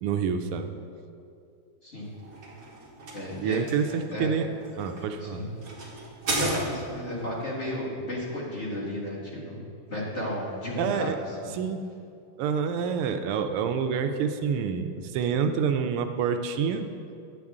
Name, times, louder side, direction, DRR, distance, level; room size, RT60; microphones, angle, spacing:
voice 1, 0.0-0.7 3.4-4.5 4.8-5.4 10.8-11.2 11.5-11.8 12.4-16.9, right 6 dB, 85° right, 8 dB, 1.5 m, -27 dB
voice 2, 1.8-2.1 3.1-3.6 4.1-4.3 5.2-5.5 6.4-9.6 9.9-11.1 11.4-11.5, left 1 dB, 30° left, -7 dB, 1.9 m, -33 dB
sound 1, 2.0-7.1, right 2 dB, 45° right, 1.7 m, -35 dB
9.8 x 7.5 x 3.6 m, 2.5 s
omnidirectional pair, 2.4 m